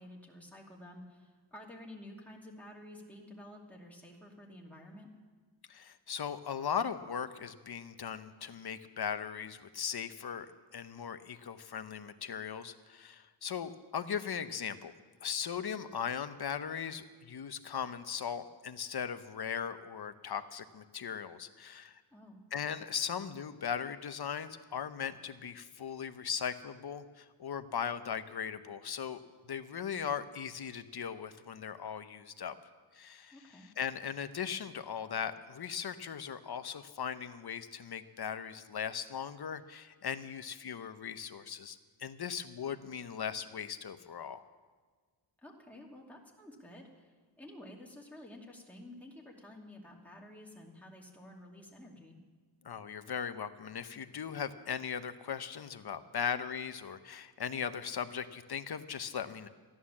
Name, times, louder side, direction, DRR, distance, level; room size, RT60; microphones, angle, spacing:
voice 1, 0.0-5.1 22.1-22.4 33.3-33.7 45.4-52.2, left 1 dB, 5° left, -2 dB, 2.6 m, -51 dB
voice 2, 5.7-10.5 10.7-14.9 15.2-22.0 22.5-32.6 32.9-33.3 33.8-44.4 52.6-59.5, left 7 dB, 55° left, 10 dB, 0.9 m, -38 dB
14.0 x 11.5 x 7.3 m, 1.5 s
wide cardioid pair, 105°, 47 cm